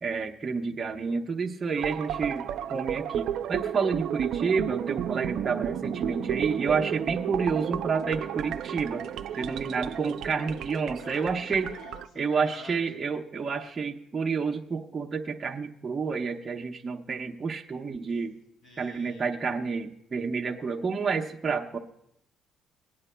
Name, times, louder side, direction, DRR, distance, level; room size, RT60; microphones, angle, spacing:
voice 1, 0.0-9.0 9.4-11.7 12.2-18.4 18.8-21.8, right 5 dB, 30° right, 0 dB, 0.8 m, -29 dB
sound 1, 1.8-12.1, right 10 dB, 70° right, 0.5 m, -33 dB
voice 2, 9.3-9.7 11.0-13.0 18.6-19.3, left 3 dB, 90° left, 1 dB, 3.3 m, -48 dB
22.5 x 9.6 x 2.2 m, 0.76 s
cardioid pair, 120°, 0 cm